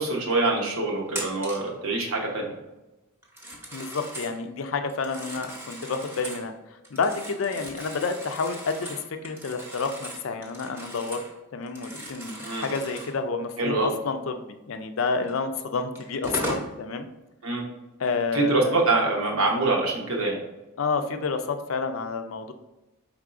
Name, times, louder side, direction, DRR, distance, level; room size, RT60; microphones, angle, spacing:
voice 1, 0.0-2.5 12.4-12.7 13.6-13.9 17.4-17.6 18.3-20.4, right 3 dB, 85° right, -1 dB, 1.0 m, -25 dB
Telephone, 1.1-1.7 3.2-4.4 4.9-6.5 6.8-11.3 11.6-13.2 15.3-15.4 15.9-16.7, right 1 dB, 10° right, 0.8 m, -38 dB
voice 2, 3.7-6.5 6.9-11.2 11.5-17.1 18.0-18.8 20.8-22.5, left 4 dB, 70° left, 7 dB, 0.5 m, -29 dB
4.7 x 3.6 x 2.5 m, 1.0 s
head